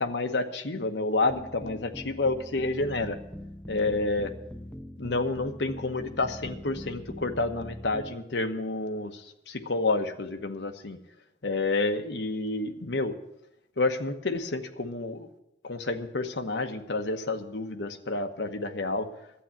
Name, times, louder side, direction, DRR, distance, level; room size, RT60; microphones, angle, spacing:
voice 1, 0.0-3.2 3.7-4.3 5.0-11.0 11.4-13.2 13.8-15.3 15.6-19.1, left 2 dB, 75° left, 6 dB, 1.1 m, -29 dB
sound 1, 1.3-8.2, equal, 5° left, 0.6 m, -42 dB
11.5 x 8.3 x 8.8 m, 0.85 s
head